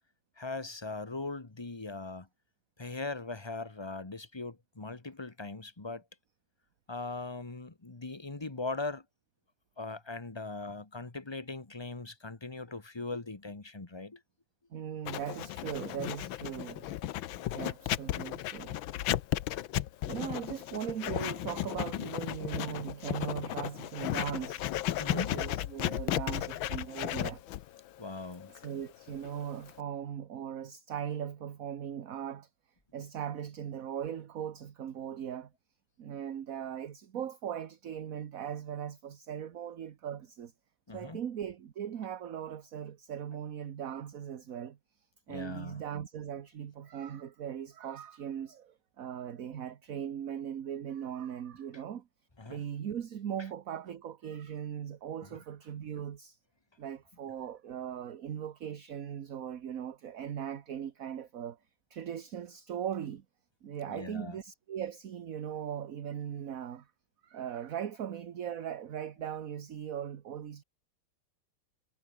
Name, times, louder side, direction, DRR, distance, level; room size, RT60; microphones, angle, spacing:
voice 1, 0.4-2.3 2.8-6.0 6.9-9.0 9.8-14.2 25.0-25.4 28.0-28.5 40.9-41.2 45.3-45.8 52.4-52.6 55.2-55.4 63.9-64.4, left 3 dB, 15° left, 1.1 m, -40 dB
voice 2, 14.7-16.9 17.5-18.8 20.1-24.6 25.1-27.4 28.5-32.5 32.9-35.5 36.0-40.5 40.9-44.8 45.3-52.1 52.5-56.4 56.8-61.6 61.9-63.2 63.6-66.9 67.2-70.6, right 9 dB, 50° right, 1.3 m, -39 dB
Writing, 15.1-29.8, left 13 dB, 75° left, 1.6 m, -35 dB
omnidirectional pair, 2.3 m